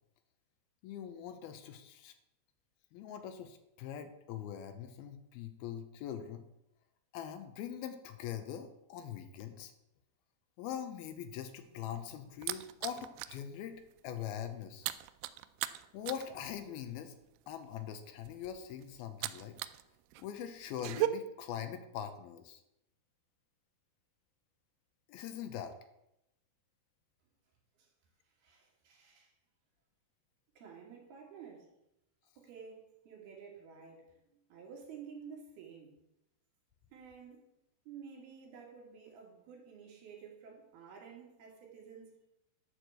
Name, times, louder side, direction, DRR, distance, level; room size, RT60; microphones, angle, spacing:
voice 1, 0.8-2.2 2.9-6.4 7.1-9.7 10.6-14.9 15.9-17.1 17.5-19.6 20.2-22.6 25.1-25.7, left 9 dB, 80° left, 9 dB, 2.5 m, -42 dB
sound 1, 11.6-13.4 13.8-14.0 14.3-19.8 20.1-21.1, right 17 dB, 85° right, 2.6 m, -38 dB
voice 2, 28.3-29.3 30.6-31.7 32.4-36.0 36.9-37.5 37.9-42.1, right 6 dB, 70° right, -1 dB, 4.0 m, -52 dB
11.5 x 4.6 x 7.7 m, 0.84 s
omnidirectional pair, 4.6 m